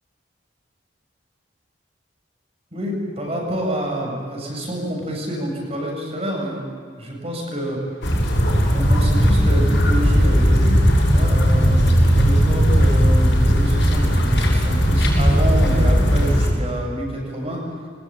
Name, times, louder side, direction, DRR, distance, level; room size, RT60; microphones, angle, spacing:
voice 1, 2.7-7.8 8.7-17.6, equal, 35° right, 0 dB, 7.9 m, -28 dB
sound 1, 8.0-16.5, equal, 85° left, 7.3 m, -16 dB
24.0 x 20.5 x 9.1 m, 2.1 s
head